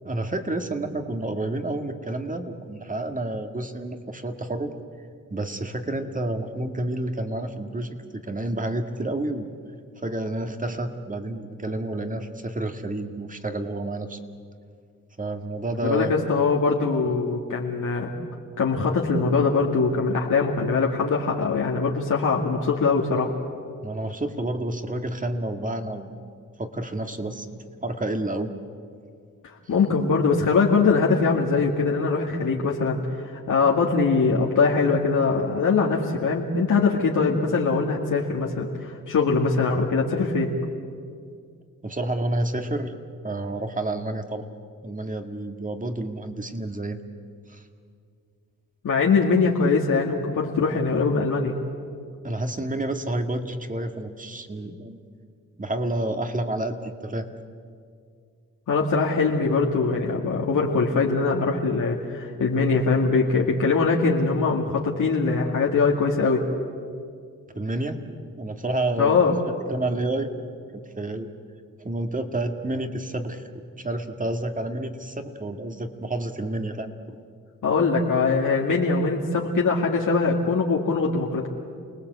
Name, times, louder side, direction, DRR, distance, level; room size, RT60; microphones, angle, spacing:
voice 1, 0.0-4.7 5.3-9.5 10.0-14.2 15.2-16.1 23.8-26.2 26.6-28.5 41.8-42.9 43.2-44.4 44.8-47.0 47.5-47.6 52.2-55.0 55.6-57.3 67.5-69.2 69.7-70.3 71.0-71.3 71.8-73.4 73.8-76.9, right 1 dB, 25° right, 6 dB, 2.1 m, -29 dB
voice 2, 15.8-18.1 18.6-23.3 29.4-40.5 48.8-51.5 58.7-66.4 69.0-69.4 77.6-81.5, left 4 dB, 70° left, -2 dB, 2.2 m, -22 dB
29.5 x 19.0 x 8.1 m, 2.2 s
cardioid pair, 80°, 32 cm